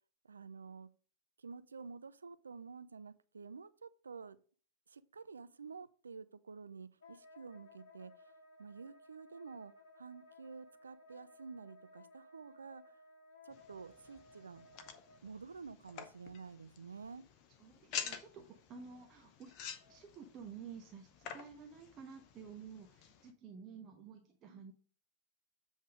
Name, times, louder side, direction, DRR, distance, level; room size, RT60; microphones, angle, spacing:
voice 1, 0.2-0.9 1.4-4.4 4.9-13.0 13.4-14.7 15.2-17.2 24.5-24.7, right 5 dB, 75° right, 0.4 m, -50 dB
Wind instrument woodwind instrument, 7.0-15.2, left 2 dB, 60° left, 1.2 m, -60 dB
sound 1, 13.5-23.3, left 8 dB, 40° left, 0.8 m, -49 dB
voice 2, 17.6-19.5 19.9-24.7, right 6 dB, 30° right, 1.0 m, -52 dB
7.8 x 3.6 x 4.9 m
figure-of-eight pair, 90°, 0 cm